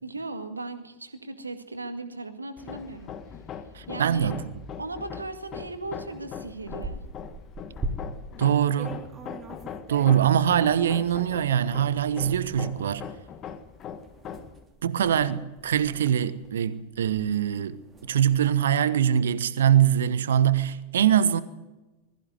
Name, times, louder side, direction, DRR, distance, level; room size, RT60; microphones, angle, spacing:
voice 1, 0.0-3.1 3.9-4.3 4.8-7.0, right 2 dB, 80° right, 2.0 m, -37 dB
Hammer, 2.6-14.6, left 7 dB, 30° left, 1.6 m, -41 dB
voice 2, 3.7-4.4 8.4-9.0 9.9-13.0 14.8-17.8 18.1-21.4, right 9 dB, 65° right, 1.1 m, -23 dB
sound 1, 5.7-5.8 6.2-8.4 8.8-10.6 11.2-11.3 12.0-18.5, right 2 dB, 20° right, 3.2 m, -41 dB
21.0 x 14.5 x 9.5 m
figure-of-eight pair, 90°, 0 cm